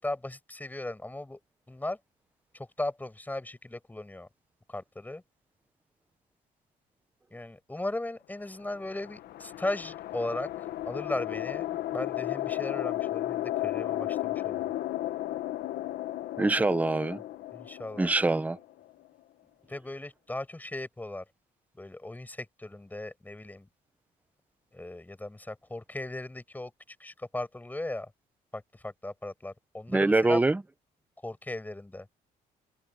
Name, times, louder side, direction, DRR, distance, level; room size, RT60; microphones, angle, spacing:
voice 1, 0.0-1.4 1.7-2.0 2.5-4.3 4.7-5.2 7.3-14.8 17.5-18.1 19.7-21.2 21.7-23.7 24.7-28.1 28.5-30.4 31.2-32.1, left 2 dB, 10° left, 7.8 m, -37 dB
sound 1, 8.6-19.1, left 14 dB, 70° left, 1.4 m, -34 dB
voice 2, 16.4-17.2 18.0-18.6 29.9-30.6, right 2 dB, 10° right, 0.7 m, -24 dB
open air
cardioid pair, 110°, 17 cm